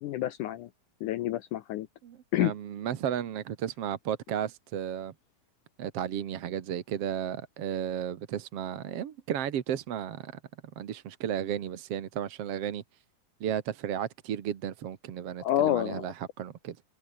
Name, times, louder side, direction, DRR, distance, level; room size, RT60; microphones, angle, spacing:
voice 1, 0.0-0.7 1.0-1.9 2.3-2.5 15.4-16.1, left 13 dB, 70° left, 2.2 m, -28 dB
voice 2, 2.0-5.1 5.8-10.3 10.8-12.8 13.4-16.8, right 9 dB, 55° right, 2.0 m, -34 dB
omnidirectional pair, 4.1 m